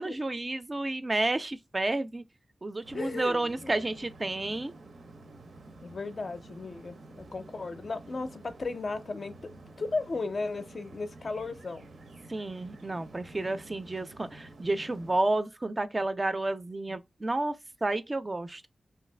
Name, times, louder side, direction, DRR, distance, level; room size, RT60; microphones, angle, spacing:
voice 1, 0.0-2.2 2.6-4.7 12.3-17.5 17.8-18.7, right 2 dB, 30° right, 0.3 m, -31 dB
sound 1, 2.8-15.2, right 2 dB, 80° right, 0.5 m, -50 dB
voice 2, 2.9-3.7 5.8-11.8 13.3-13.5, left 3 dB, 55° left, 0.4 m, -36 dB
2.7 x 2.4 x 3.2 m
wide cardioid pair, 100°, 0 cm